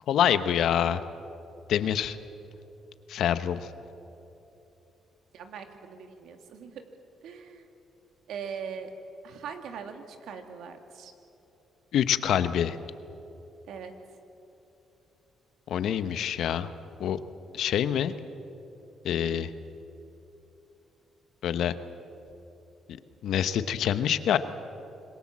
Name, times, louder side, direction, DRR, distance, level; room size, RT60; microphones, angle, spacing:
voice 1, 0.1-1.0 1.7-2.2 3.1-3.7 11.9-12.8 15.7-16.7 17.0-17.2 17.5-18.1 19.0-19.5 21.4-21.7 23.2-24.4, left 9 dB, 75° left, 12 dB, 1.0 m, -26 dB
voice 2, 5.3-6.8 7.2-7.7 8.3-8.9 9.2-11.1 13.7-13.9, right 6 dB, 80° right, 6 dB, 2.4 m, -41 dB
26.0 x 21.0 x 7.5 m, 3.0 s
cardioid pair, 90°, 0 cm